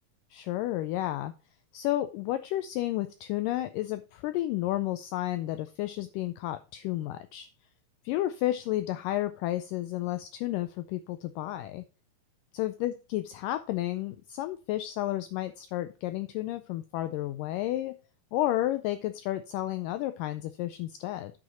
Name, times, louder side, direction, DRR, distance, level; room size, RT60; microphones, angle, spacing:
voice 1, 0.3-1.3 1.7-7.5 8.1-11.8 12.5-17.9 18.3-21.3, left 14 dB, 90° left, 11 dB, 1.9 m, -31 dB
9.3 x 5.0 x 4.2 m, 0.35 s
omnidirectional pair, 4.3 m